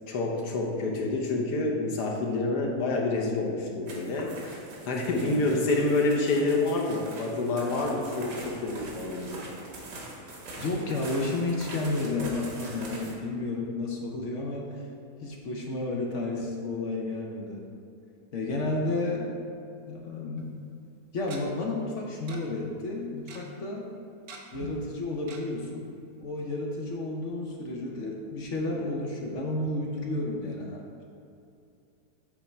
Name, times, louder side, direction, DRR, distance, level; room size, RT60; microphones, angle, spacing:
voice 1, 0.1-9.4, left 2 dB, 90° left, -1 dB, 1.5 m, -28 dB
sound 1, 3.9-13.2, right 2 dB, 85° right, 1.8 m, -42 dB
voice 2, 5.2-5.7 10.6-14.7 15.2-17.6 18.3-19.3 19.9-20.6 21.1-23.9 24.5-25.9 26.2-30.8, left 2 dB, 60° left, -1 dB, 1.0 m, -32 dB
Tick-tock, 20.4-20.5 21.3-21.4 22.3-22.4 22.7-22.8 23.0-23.4 24.3-24.7 25.3-25.4 25.8-25.9 26.2-26.3, right 4 dB, 70° right, 1.2 m, -44 dB
8.5 x 3.5 x 4.3 m, 2.5 s
omnidirectional pair, 1.7 m